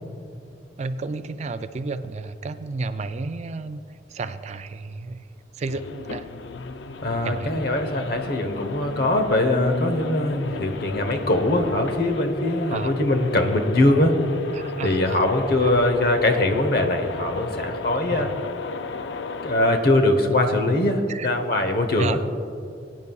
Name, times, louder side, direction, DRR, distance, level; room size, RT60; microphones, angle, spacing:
voice 1, 0.8-3.8 4.1-5.2 5.6-6.3 7.2-7.6 12.7-13.0 14.6-15.2 18.1-18.3 21.1-21.3 22.0-22.2, right 3 dB, 40° right, 11 dB, 0.3 m, -31 dB
sound 1, 5.7-19.8, left 4 dB, 85° left, 0.5 m, -33 dB
voice 2, 7.0-14.1 14.8-18.3 19.4-22.2, left 1 dB, 60° left, 5 dB, 1.0 m, -22 dB
20.0 x 9.5 x 2.4 m, 2.5 s
head